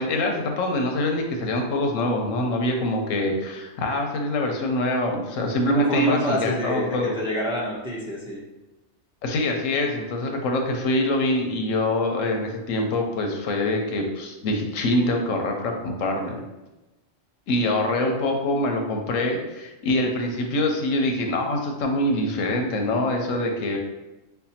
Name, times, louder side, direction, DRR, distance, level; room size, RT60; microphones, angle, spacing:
voice 1, 0.0-7.1 9.2-16.4 17.5-23.8, left 1 dB, 85° left, 2 dB, 1.0 m, -24 dB
voice 2, 5.7-8.4, left 1 dB, 5° right, -6 dB, 0.5 m, -27 dB
5.5 x 2.2 x 2.8 m, 1.0 s
omnidirectional pair, 1.3 m